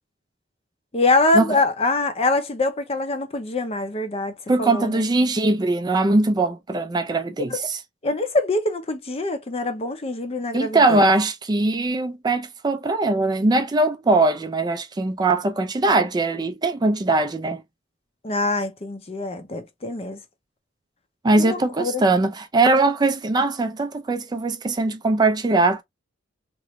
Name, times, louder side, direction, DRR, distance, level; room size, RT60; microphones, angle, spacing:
voice 1, 0.9-5.0 7.5-7.6 8.0-11.0 18.2-20.2 21.4-22.0, left 2 dB, 30° left, 0.6 m, -24 dB
voice 2, 4.5-7.8 10.5-17.6 21.2-25.8, right 2 dB, 20° right, 0.4 m, -21 dB
3.0 x 2.5 x 3.0 m
head